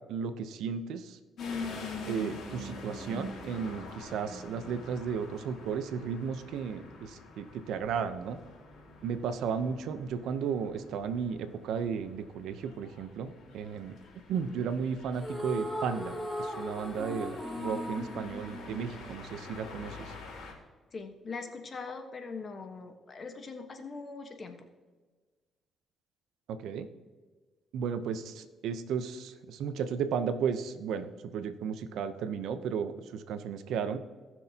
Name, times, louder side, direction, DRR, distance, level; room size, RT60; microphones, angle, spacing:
voice 1, 0.1-1.2 2.1-8.4 9.0-14.0 14.3-20.1 26.5-26.9 27.7-34.0, right 6 dB, 80° right, 10 dB, 0.8 m, -34 dB
sound 1, 1.4-20.5, left 3 dB, 70° left, 3.0 m, -45 dB
sound 2, 15.2-19.6, left 1 dB, ahead, 1.1 m, -38 dB
voice 2, 20.9-24.6, left 4 dB, 40° left, 5 dB, 1.3 m, -41 dB
18.5 x 6.3 x 2.9 m, 1.4 s
cardioid pair, 90°, 0 cm